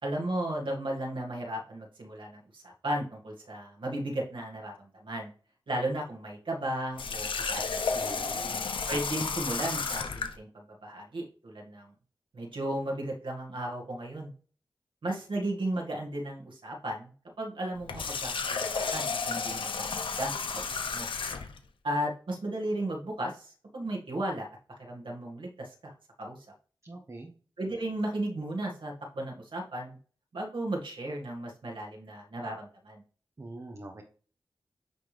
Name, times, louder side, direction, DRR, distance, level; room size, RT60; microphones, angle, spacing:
voice 1, 0.0-5.3 5.7-8.2 8.9-11.9 12.3-14.3 15.0-17.1 17.4-18.3 18.6-19.7 20.0-20.7 20.9-21.1 21.8-24.5 24.8-26.4 27.6-30.0 30.3-33.0, right 1 dB, 75° right, 0 dB, 1.8 m, -35 dB
Water tap faucet, 7.0-10.4 17.8-21.6, left 5 dB, 80° left, 0.8 m, -32 dB
voice 2, 7.9-8.7 26.8-27.3 33.4-34.0, right 2 dB, 35° right, 2 dB, 1.0 m, -44 dB
9.4 x 3.5 x 3.3 m, 0.41 s
wide cardioid pair, 75°, 9 cm